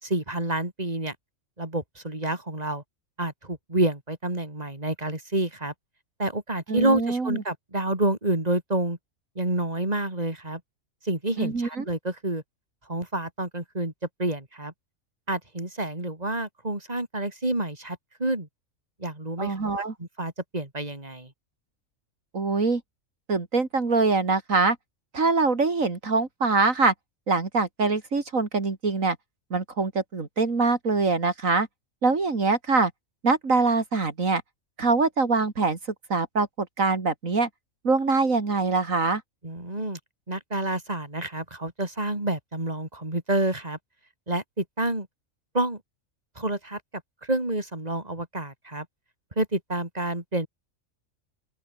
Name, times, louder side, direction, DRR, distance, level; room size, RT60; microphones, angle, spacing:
voice 1, 0.0-1.2 1.6-2.8 3.2-5.7 6.2-9.0 9.4-10.6 11.0-12.4 12.9-13.9 14.2-14.7 15.3-18.5 19.0-21.3 39.4-40.0 40.3-43.8 44.3-45.1 45.5-45.8 46.4-46.8 47.2-48.9 49.4-50.5, right 2 dB, 30° right, 4.5 m, -28 dB
voice 2, 6.7-7.4 11.4-11.8 19.4-19.9 22.3-22.8 23.3-24.8 25.1-26.9 27.3-29.2 29.5-31.7 32.0-32.9 33.2-34.4 34.8-35.8 36.1-37.5 37.8-39.2, right 3 dB, 75° right, 3.2 m, -24 dB
open air
omnidirectional pair, 1.4 m